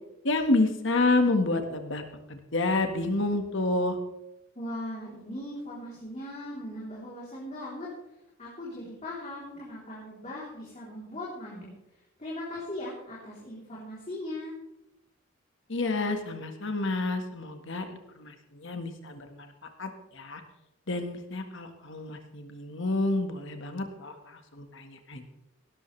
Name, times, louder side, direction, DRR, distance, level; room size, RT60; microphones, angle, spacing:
voice 1, 0.2-2.0 2.3-4.0 15.7-17.8 18.1-19.5 19.8-20.4 20.9-25.3, left 2 dB, 60° left, 6 dB, 1.7 m, -29 dB
voice 2, 4.6-7.9 8.4-11.7 12.2-14.6, left 1 dB, 35° left, -6 dB, 3.7 m, -39 dB
17.5 x 13.0 x 3.4 m, 0.90 s
head